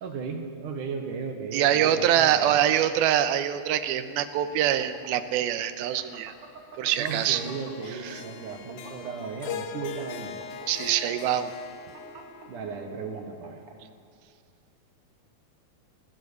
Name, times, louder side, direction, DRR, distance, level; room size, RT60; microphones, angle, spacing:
voice 1, 0.0-2.6 7.0-10.4 12.5-13.6, right 5 dB, 60° right, 6 dB, 2.8 m, -36 dB
voice 2, 1.5-6.3 6.8-7.4 8.1-8.2 10.7-11.5, right 10 dB, 85° right, 11 dB, 2.7 m, -24 dB
sound 1, 4.4-8.0 8.4-13.7, right 5 dB, 45° right, 2.6 m, -46 dB
Harp, 6.9-13.2, left 6 dB, 75° left, 3.0 m, -41 dB
19.5 x 16.0 x 8.3 m, 2.6 s
omnidirectional pair, 4.3 m